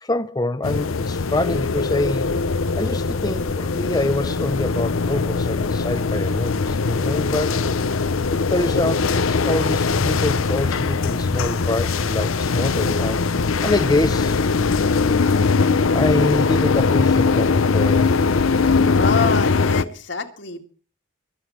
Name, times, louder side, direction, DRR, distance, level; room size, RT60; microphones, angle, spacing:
voice 1, 0.0-7.6 8.3-14.4 15.9-18.1, left 2 dB, 20° left, 0.6 m, -25 dB
sound 1, 0.6-19.8, left 4 dB, 90° left, 0.8 m, -21 dB
voice 2, 19.0-20.7, left 4 dB, 65° left, 2.2 m, -26 dB
23.0 x 7.9 x 5.0 m
head